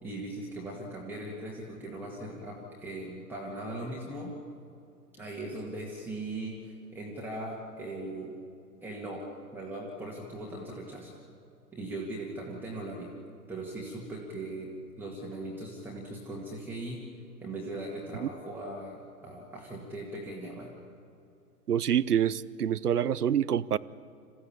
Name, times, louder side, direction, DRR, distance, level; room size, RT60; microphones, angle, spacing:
voice 1, 0.0-4.4 5.1-8.4 8.8-9.3 9.5-11.1 11.7-13.1 13.5-17.0 17.4-20.7, right 1 dB, 5° right, -4 dB, 2.1 m, -39 dB
voice 2, 21.7-23.8, right 9 dB, 70° right, 18 dB, 0.8 m, -26 dB
27.0 x 15.5 x 8.7 m, 2.6 s
figure-of-eight pair, 120°, 48 cm